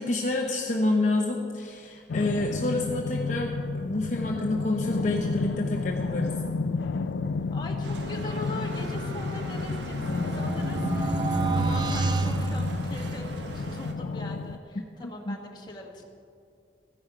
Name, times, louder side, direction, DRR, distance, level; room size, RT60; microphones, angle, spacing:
voice 1, 0.0-6.3 15.3-15.4, left 2 dB, 45° left, 0 dB, 0.8 m, -28 dB
sound 1, 2.1-14.6, left 4 dB, 85° left, 0.4 m, -31 dB
voice 2, 7.5-11.2 11.5-16.0, left 1 dB, 25° left, 0 dB, 1.5 m, -41 dB
Bicycle, 7.8-13.9, right 2 dB, 80° right, 1.1 m, -40 dB
sound 2, 9.5-13.4, right 3 dB, 25° right, 0.5 m, -29 dB
14.5 x 10.5 x 4.9 m, 2.4 s
head